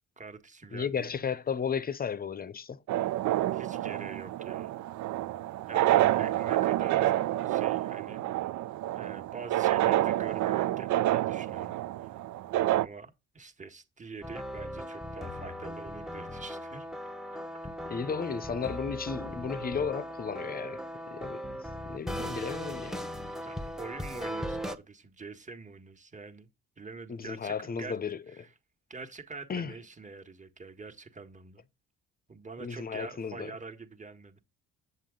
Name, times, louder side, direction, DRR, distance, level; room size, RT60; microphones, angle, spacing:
voice 1, 0.2-1.1 3.5-4.8 5.7-8.3 8.9-12.1 12.7-16.9 22.1-22.9 23.4-26.5 26.8-28.0 28.3-28.5 28.9-31.7 32.3-34.4, right 4 dB, 25° right, 1.5 m, -45 dB
voice 2, 0.7-2.8 17.9-23.1 27.1-28.5 29.5-29.7 32.6-33.5, left 6 dB, 30° left, 0.7 m, -34 dB
sound 1, 2.9-12.9, right 14 dB, 70° right, 0.5 m, -28 dB
sound 2, 14.2-24.8, equal, ahead, 1.0 m, -38 dB
8.0 x 7.5 x 3.8 m
cardioid pair, 90°, 30 cm